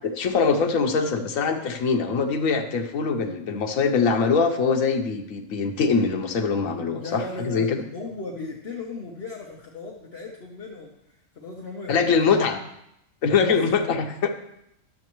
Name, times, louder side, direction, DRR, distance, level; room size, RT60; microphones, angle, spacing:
voice 1, 0.2-7.8 11.9-12.6 13.2-14.3, left 5 dB, 85° left, 5 dB, 1.2 m, -23 dB
voice 2, 7.0-12.4 13.4-13.8, left 3 dB, 55° left, -1 dB, 1.2 m, -37 dB
12.0 x 7.3 x 3.0 m, 0.80 s
omnidirectional pair, 1.4 m